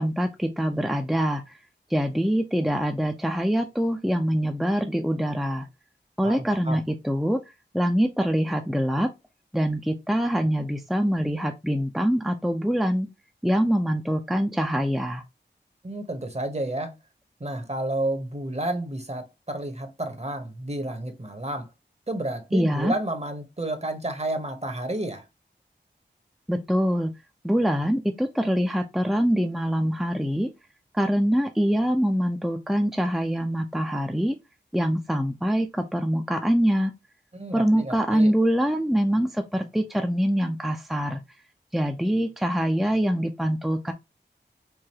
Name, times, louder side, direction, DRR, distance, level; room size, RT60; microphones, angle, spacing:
voice 1, 0.0-1.6 1.9-5.7 6.2-7.4 7.7-9.1 9.5-13.1 13.4-15.2 22.5-22.9 26.5-27.1 27.4-30.5 30.9-34.4 34.7-36.9 37.5-41.2 41.7-43.9, equal, ahead, 0.6 m, -24 dB
voice 2, 6.2-6.8 15.8-17.0 17.4-21.7 22.1-25.3 37.3-38.3, right 1 dB, 35° right, 1.0 m, -31 dB
4.7 x 2.6 x 2.9 m
wide cardioid pair, 50°, 19 cm